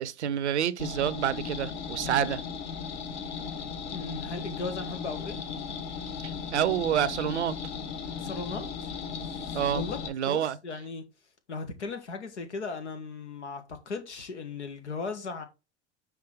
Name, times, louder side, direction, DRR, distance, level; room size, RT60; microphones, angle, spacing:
voice 1, 0.0-2.4 6.2-7.6 9.5-10.6, right 9 dB, 80° right, 0.6 m, -28 dB
sound 1, 0.8-10.1, left 6 dB, 50° left, 1.5 m, -36 dB
voice 2, 3.9-5.4 8.2-8.9 9.3-10.0 10.2-11.0 11.5-15.4, left 4 dB, 80° left, 1.5 m, -37 dB
5.9 x 4.7 x 3.5 m
hypercardioid pair, 80°, 34 cm